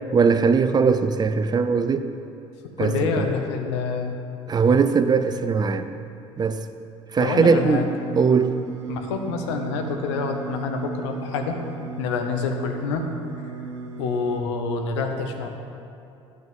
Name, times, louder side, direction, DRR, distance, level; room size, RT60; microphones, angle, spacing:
voice 1, 0.1-2.1 2.8-3.3 4.5-5.9 6.4-6.6 7.1-7.8 8.1-8.5, right 5 dB, 30° right, 10 dB, 0.5 m, -20 dB
voice 2, 2.8-4.2 7.2-7.8 8.9-11.6 12.0-13.1 14.0-15.5, left 4 dB, 75° left, 5 dB, 0.8 m, -27 dB
Singing, 7.2-14.4, right 4 dB, 85° right, 0.8 m, -35 dB
9.6 x 7.7 x 3.7 m, 2.7 s
hypercardioid pair, 65°, 15 cm